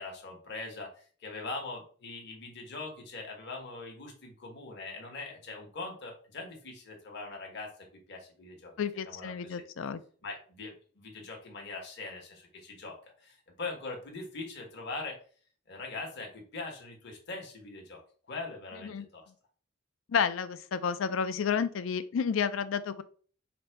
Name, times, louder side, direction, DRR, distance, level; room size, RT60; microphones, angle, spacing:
voice 1, 0.0-7.7 8.1-8.7 9.0-9.6 10.2-15.2 15.7-18.0 18.3-19.2, left 3 dB, 55° left, 0 dB, 1.2 m, -42 dB
voice 2, 8.8-10.0 18.8-19.0 20.1-23.0, left 6 dB, 75° left, 12 dB, 0.4 m, -31 dB
3.9 x 2.2 x 4.5 m, 0.43 s
head